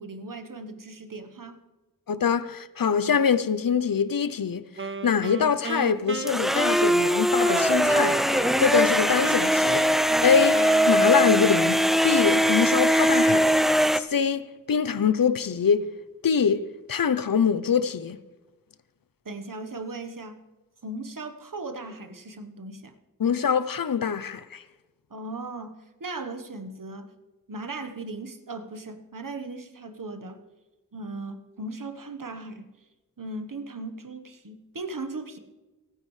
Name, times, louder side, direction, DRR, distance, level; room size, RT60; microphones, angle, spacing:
voice 1, 0.0-1.6 19.2-20.4 20.8-22.9 25.1-27.1 27.5-30.4 30.9-32.7 33.2-35.4, right 2 dB, 70° right, 1.3 m, -37 dB
voice 2, 2.1-4.6 5.0-9.9 10.2-15.8 16.2-18.2 23.2-24.6, left 6 dB, 85° left, 0.7 m, -24 dB
Wind instrument woodwind instrument, 4.8-8.9 9.2-12.1, right 4 dB, 35° right, 0.7 m, -35 dB
sound 1, 6.3-14.0, equal, ahead, 0.5 m, -21 dB
29.0 x 9.7 x 3.2 m
wide cardioid pair, 45°, 33 cm